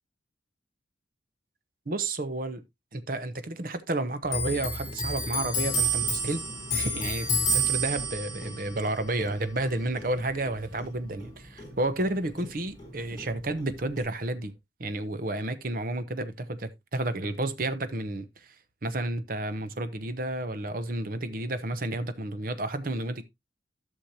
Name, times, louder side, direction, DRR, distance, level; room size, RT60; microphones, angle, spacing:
voice 1, 1.9-2.6 2.9-6.4 6.7-14.5 14.8-18.5 18.8-23.2, right 2 dB, 50° right, 0.9 m, -31 dB
Clock, 4.3-11.3 11.6-12.9 13.2-14.0, right 1 dB, 25° left, 4.4 m, -30 dB
12.0 x 6.4 x 2.8 m
head